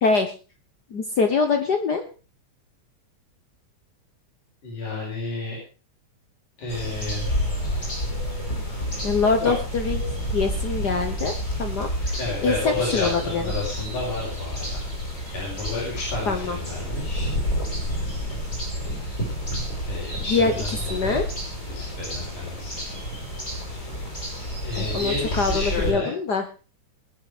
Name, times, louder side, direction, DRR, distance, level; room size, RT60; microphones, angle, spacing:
voice 1, 0.0-0.3 0.9-2.0 9.0-10.0 10.3-11.3 11.6-13.4 16.3-16.6 20.3-20.5 20.9-21.2 24.9-26.4, left 4 dB, 75° left, 6 dB, 0.9 m, -24 dB
voice 2, 4.6-5.6 6.6-7.3 9.4-9.5 12.2-14.8 15.3-17.3 19.9-21.2 21.7-22.8 24.6-26.1, left 3 dB, 90° left, -4 dB, 6.5 m, -31 dB
sound 1, 6.7-25.9, equal, 25° left, 5.9 m, -29 dB
20.0 x 8.1 x 5.0 m, 0.37 s
omnidirectional pair, 3.5 m